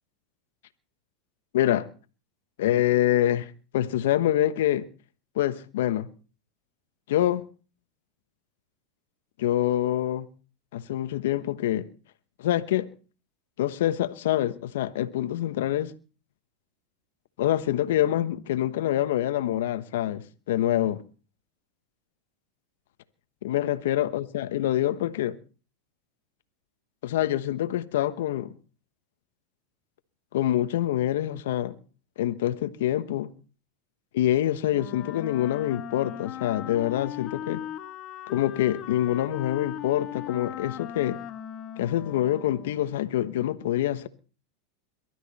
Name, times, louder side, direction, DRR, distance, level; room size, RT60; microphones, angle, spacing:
voice 1, 1.5-1.9 2.6-4.8 5.3-6.1 7.1-7.4 9.4-10.3 10.7-11.9 12.4-12.9 13.6-15.9 17.4-21.0 23.4-25.4 27.0-28.5 30.3-31.8 32.2-33.3 34.1-37.6 38.3-41.2 41.8-44.1, left 12 dB, 80° left, 1.2 m, -26 dB
Wind instrument woodwind instrument, 34.7-43.0, left 11 dB, 35° left, 1.9 m, -38 dB
23.0 x 12.5 x 4.2 m
supercardioid pair, 125°, 0 cm